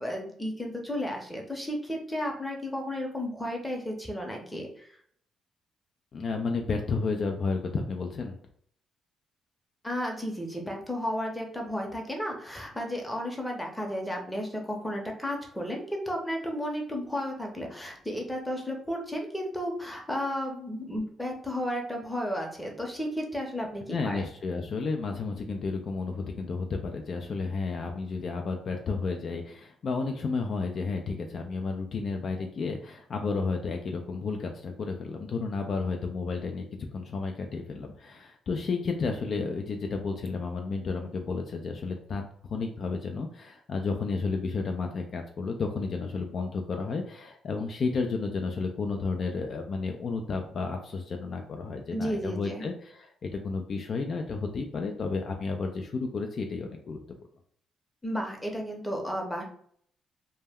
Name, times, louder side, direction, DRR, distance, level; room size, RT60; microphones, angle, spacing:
voice 1, 0.0-4.9 9.8-24.2 51.9-52.7 58.0-59.4, equal, 10° left, 1 dB, 0.7 m, -33 dB
voice 2, 6.1-8.4 23.9-36.7 36.9-57.0, left 4 dB, 50° left, 3 dB, 0.3 m, -32 dB
2.1 x 2.1 x 3.4 m, 0.62 s
cardioid pair, 90°, 0 cm